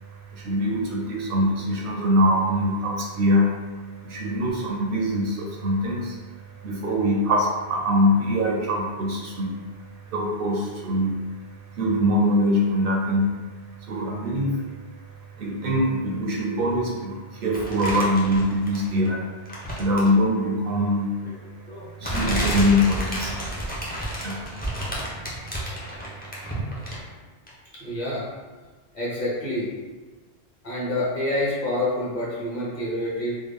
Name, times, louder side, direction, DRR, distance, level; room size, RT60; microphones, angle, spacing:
voice 1, 0.3-3.6 4.0-6.2 6.6-9.6 10.1-11.1 11.8-13.4 13.9-14.7 15.4-19.3 19.7-21.2 22.0-23.3 24.2-24.4, equal, 65° right, -1 dB, 0.7 m, -23 dB
sound 1, 17.5-19.1 19.5-20.2 21.2-21.3 22.0-27.1 27.5-27.6, equal, 10° left, 0.5 m, -30 dB
voice 2, 27.7-28.3 28.9-29.7 30.6-33.3, left 1 dB, 45° left, -7 dB, 1.0 m, -27 dB
3.5 x 2.1 x 3.3 m, 1.3 s
omnidirectional pair, 1.1 m